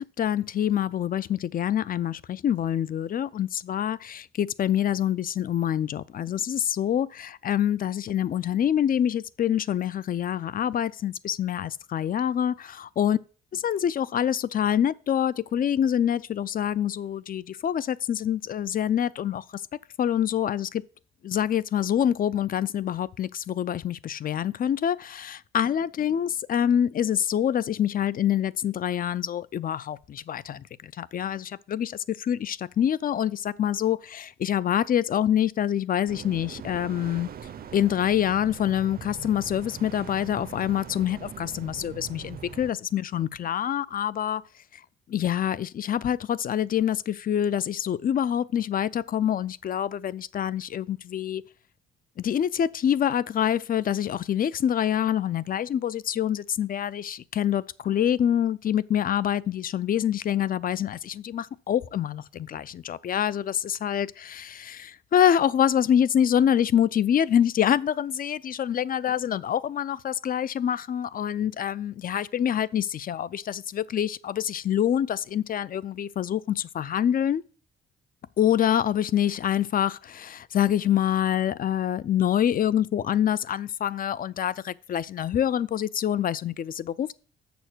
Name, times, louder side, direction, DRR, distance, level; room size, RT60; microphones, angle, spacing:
voice 1, 0.0-13.2 13.5-19.4 20.0-20.8 21.2-37.3 37.7-44.4 45.1-51.4 52.2-77.4 78.4-87.1, left 10 dB, 45° left, 0.5 m, -26 dB
sound 1, 36.1-42.7, right 8 dB, 50° right, 0.6 m, -42 dB
6.9 x 6.4 x 6.0 m
cardioid pair, 90°, 20 cm